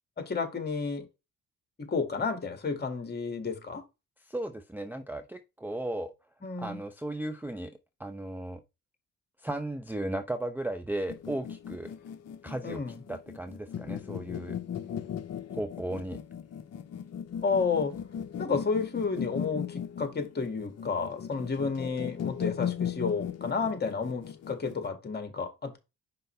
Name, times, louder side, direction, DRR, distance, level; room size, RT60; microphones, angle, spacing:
voice 1, 0.2-1.1 1.8-3.8 6.4-6.8 12.6-13.0 17.4-18.0 18.4-25.8, left 4 dB, 35° left, 2.1 m, -31 dB
voice 2, 4.3-6.1 6.6-7.7 8.0-8.6 9.4-11.9 12.4-12.8 13.1-14.6 15.5-16.2, right 1 dB, 5° right, 0.6 m, -35 dB
sound 1, 11.1-24.9, left 8 dB, 55° left, 0.8 m, -37 dB
5.6 x 5.3 x 3.3 m
cardioid pair, 90°, 30 cm